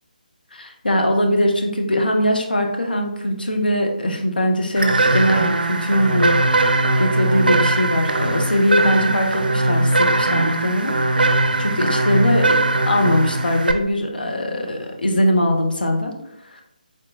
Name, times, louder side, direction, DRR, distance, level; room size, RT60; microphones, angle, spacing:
voice 1, 0.5-12.6 12.9-16.1 16.5-16.6, equal, 75° left, 2 dB, 0.7 m, -21 dB
sound 1, 4.8-13.7, right 2 dB, 75° right, 0.4 m, -20 dB
3.6 x 2.9 x 2.7 m, 0.78 s
figure-of-eight pair, 145°, 5 cm